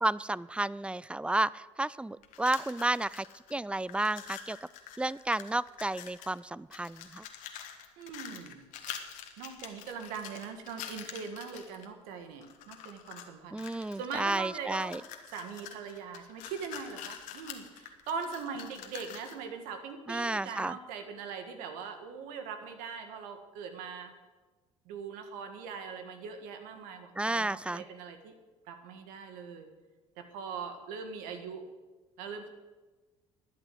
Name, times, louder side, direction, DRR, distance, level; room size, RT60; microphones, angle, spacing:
voice 1, 0.0-3.3 3.5-4.6 5.0-7.2 13.5-15.0 20.1-20.8 27.2-27.8, right 2 dB, 10° right, 21 dB, 0.4 m, -32 dB
sound 1, 2.2-3.5 3.8-6.4 6.7-11.9 12.4-13.3 13.6-19.4, left 9 dB, 70° left, 1.5 m, -46 dB
voice 2, 8.0-8.7 9.4-15.0 15.3-24.1 24.8-28.3 28.7-29.7 30.2-31.7 32.2-32.5, right 6 dB, 75° right, 7 dB, 1.7 m, -41 dB
12.5 x 8.9 x 7.8 m, 1.2 s
hypercardioid pair, 60°, 14 cm